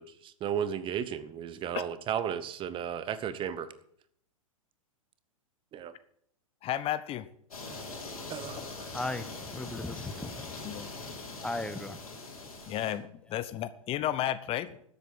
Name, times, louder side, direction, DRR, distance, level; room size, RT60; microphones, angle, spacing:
voice 1, 0.0-3.7 5.7-5.9 8.3-9.0, right 9 dB, 30° right, 14 dB, 1.1 m, -34 dB
voice 2, 6.6-7.3 10.6-10.9 12.7-14.7, left 12 dB, 30° left, 14 dB, 0.9 m, -32 dB
sound 1, 7.5-12.9, left 3 dB, 85° left, 4.2 m, -42 dB
voice 3, 8.9-10.6 11.4-12.0, left 2 dB, 5° left, 11 dB, 0.9 m, -36 dB
13.0 x 8.0 x 7.9 m, 0.68 s
hypercardioid pair, 105°, 18 cm